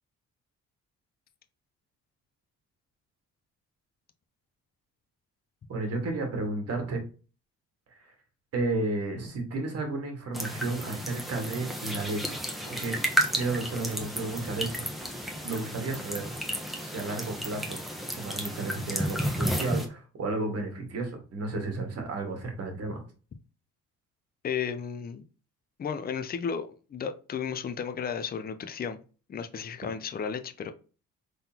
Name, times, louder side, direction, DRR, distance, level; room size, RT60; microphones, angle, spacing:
voice 1, 5.7-7.0 8.5-12.4 12.7-14.7 15.4-16.3 16.8-17.8 18.2-23.0, right 2 dB, 55° right, 1.7 m, -32 dB
sound 1, 10.3-19.9, equal, ahead, 1.0 m, -32 dB
voice 2, 24.4-25.2 25.8-29.0 29.3-30.7, left 7 dB, 30° left, 0.5 m, -33 dB
3.8 x 3.7 x 2.8 m
cardioid pair, 90°, 30 cm